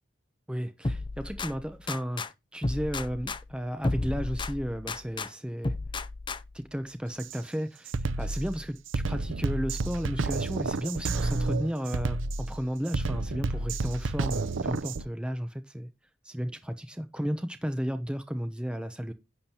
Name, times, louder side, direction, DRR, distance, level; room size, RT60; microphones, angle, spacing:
voice 1, 0.5-5.7 6.5-15.9 16.2-19.1, equal, 5° right, 0.8 m, -34 dB
sound 1, 0.8-2.3 2.6-5.3 5.6-6.7, left 2 dB, 25° left, 0.6 m, -33 dB
Drum kit, 7.2-7.4 7.9-15.1, right 3 dB, 85° right, 0.6 m, -30 dB
11.0 x 8.7 x 2.9 m
head